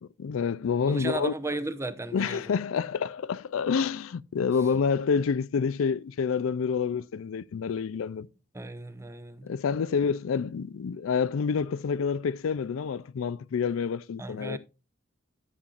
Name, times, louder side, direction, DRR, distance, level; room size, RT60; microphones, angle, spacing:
voice 1, 0.2-1.3 2.1-8.3 9.4-14.6, left 6 dB, 75° left, 0.4 m, -28 dB
voice 2, 0.9-2.4 8.5-9.5 14.2-14.6, right 2 dB, 15° right, 0.7 m, -35 dB
12.5 x 7.4 x 2.4 m
head